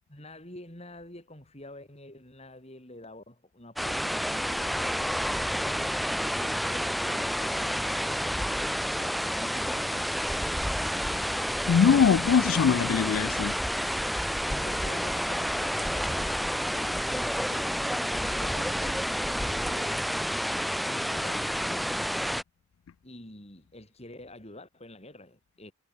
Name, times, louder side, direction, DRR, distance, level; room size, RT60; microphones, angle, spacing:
voice 1, 0.1-5.9 6.3-10.3 14.4-20.1 20.9-22.1 23.0-25.7, left 1 dB, 30° left, 5.4 m, -47 dB
sound 1, 3.8-22.4, equal, ahead, 0.3 m, -29 dB
voice 2, 11.7-13.5, left 6 dB, 85° left, 0.4 m, -22 dB
head